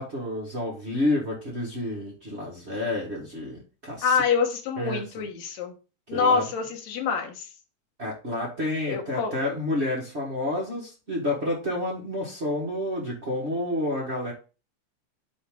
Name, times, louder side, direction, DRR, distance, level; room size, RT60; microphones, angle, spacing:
voice 1, 0.0-4.2 4.8-5.2 6.1-6.5 8.0-14.3, left 1 dB, 35° right, -3 dB, 1.1 m, -29 dB
voice 2, 4.0-5.7 6.1-7.5 8.9-9.3, left 5 dB, 65° left, 3 dB, 2.4 m, -26 dB
9.5 x 3.3 x 3.7 m, 0.33 s
omnidirectional pair, 3.5 m